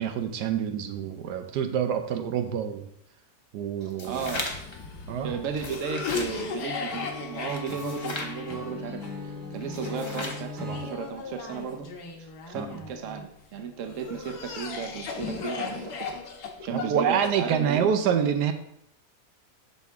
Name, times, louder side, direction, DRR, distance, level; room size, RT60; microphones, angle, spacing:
voice 1, 0.0-2.8 3.5-4.2 5.1-5.4 12.5-12.7 15.6-15.8 16.7-18.5, right 8 dB, 85° right, 7 dB, 1.2 m, -27 dB
sound 1, 3.8-4.8 5.4-6.3 7.5-8.4 9.6-10.5, left 2 dB, 25° left, 0.6 m, -37 dB
Cough, 4.0-13.3 13.8-17.8, left 5 dB, 85° left, 1.6 m, -37 dB
voice 2, 4.0-4.5 5.2-11.9 12.2-16.1 16.6-17.9, right 6 dB, 60° right, 6 dB, 1.0 m, -35 dB
Acoustic guitar / Strum, 6.9-11.0, left 2 dB, 35° right, 1.7 m, -39 dB
6.3 x 5.5 x 3.5 m, 0.74 s
omnidirectional pair, 1.7 m